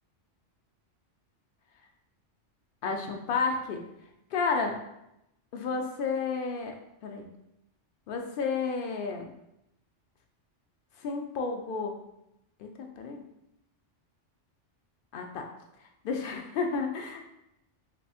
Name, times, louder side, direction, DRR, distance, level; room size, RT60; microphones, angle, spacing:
voice 1, 2.8-3.8 4.3-4.8 5.5-6.8 7.0-7.3 8.1-9.3 11.0-12.0 12.6-12.7 13.0-13.2 15.1-15.5 16.0-17.2, left 4 dB, 60° left, 3 dB, 0.6 m, -31 dB
4.0 x 2.9 x 2.4 m, 0.84 s
omnidirectional pair, 1.2 m